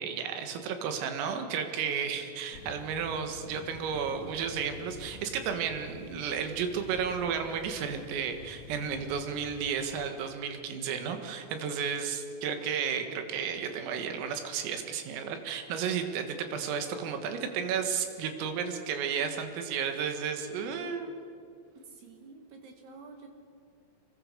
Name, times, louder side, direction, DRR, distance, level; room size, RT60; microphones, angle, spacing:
voice 1, 0.0-21.1, right 7 dB, 85° right, 6 dB, 4.5 m, -33 dB
sound 1, 2.5-10.1, left 3 dB, 50° left, 2.0 m, -49 dB
voice 2, 21.9-23.3, right 4 dB, 65° right, 4 dB, 3.1 m, -49 dB
25.5 x 21.5 x 6.9 m, 2.5 s
omnidirectional pair, 5.8 m